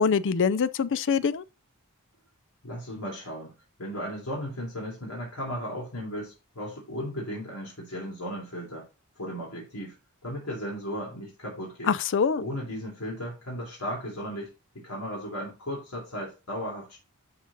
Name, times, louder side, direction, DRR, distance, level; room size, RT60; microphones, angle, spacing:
voice 1, 0.0-1.4 11.9-12.4, left 6 dB, 55° left, 0.5 m, -24 dB
voice 2, 2.6-3.5 3.8-8.9 9.2-9.9 10.2-11.9 12.4-17.0, equal, 75° left, 3.2 m, -36 dB
11.5 x 4.0 x 4.0 m
head